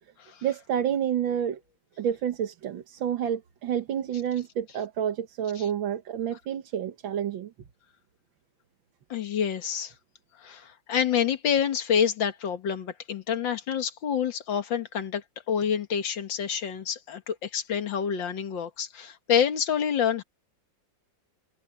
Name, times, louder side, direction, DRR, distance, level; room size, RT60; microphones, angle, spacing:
voice 1, 0.4-1.6 2.0-7.5, right 9 dB, 85° right, 2.0 m, -29 dB
voice 2, 9.1-9.9 10.4-20.2, left 8 dB, 75° left, 2.4 m, -27 dB
omnidirectional pair, 2.1 m